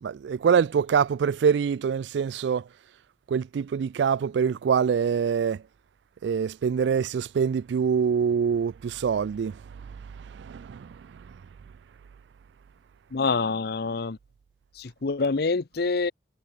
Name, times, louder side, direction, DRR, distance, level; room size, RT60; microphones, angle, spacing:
voice 1, 0.0-2.6 3.3-5.6 6.2-9.6 10.3-10.9, right 7 dB, 75° right, 0.3 m, -25 dB
voice 2, 13.1-14.2 14.8-16.1, left 4 dB, 60° left, 0.7 m, -26 dB
head